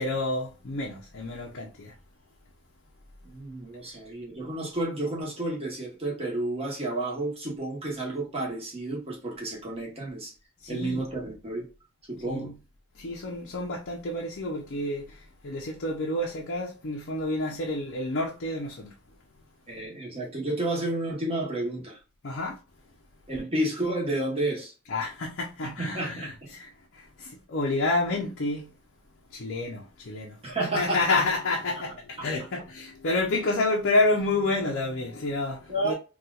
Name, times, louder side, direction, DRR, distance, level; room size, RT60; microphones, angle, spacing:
voice 1, 0.0-1.9 10.6-11.0 12.3-12.5 12.9-18.9 22.2-22.6 24.9-28.7 29.3-30.4 30.8-35.9, left 2 dB, 55° left, 0.6 m, -29 dB
voice 2, 3.2-10.3 10.7-11.7 12.1-12.5 19.7-22.0 23.3-24.7 25.8-26.3 30.4-31.2 35.7-35.9, right 1 dB, 25° right, 1.0 m, -31 dB
4.1 x 2.4 x 2.3 m
head